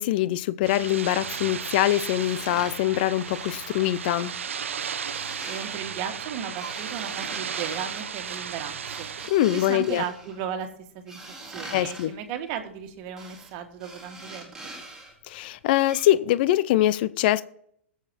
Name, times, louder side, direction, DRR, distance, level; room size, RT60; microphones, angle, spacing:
voice 1, 0.0-4.3 9.3-10.0 11.7-12.1 15.3-17.4, left 14 dB, 45° left, 17 dB, 0.6 m, -23 dB
sound 1, 0.6-9.3, right 7 dB, 70° right, 0.8 m, -34 dB
sound 2, 2.2-4.4 4.9-5.9 6.2-10.4 11.1-12.1 13.2-13.5 13.8-15.1 15.4-15.5 15.8-16.0, right 2 dB, 10° right, 3.8 m, -43 dB
voice 2, 5.5-9.1 9.5-10.7 10.9-11.2 11.5-14.7, right 8 dB, 40° right, 5 dB, 2.0 m, -35 dB
21.0 x 8.1 x 3.1 m, 0.67 s
figure-of-eight pair, 110°, 7 cm